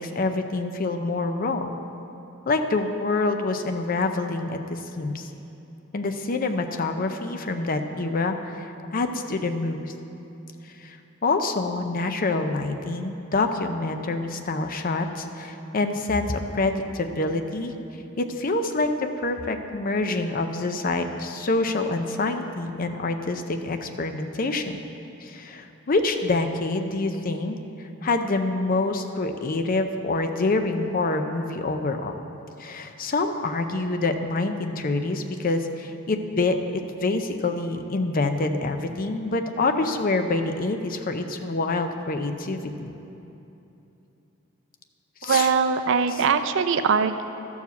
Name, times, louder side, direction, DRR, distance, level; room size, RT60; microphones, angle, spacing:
voice 1, 0.0-1.7 2.5-5.3 5.9-9.9 10.8-11.0 11.2-17.7 18.2-24.8 25.2-27.6 28.0-32.2 32.6-42.9 45.2-45.6 46.1-46.2, left 3 dB, 40° left, 7 dB, 0.5 m, -26 dB
voice 2, 45.2-47.2, right 6 dB, 60° right, 10 dB, 0.4 m, -22 dB
12.0 x 4.8 x 7.0 m, 3.0 s
head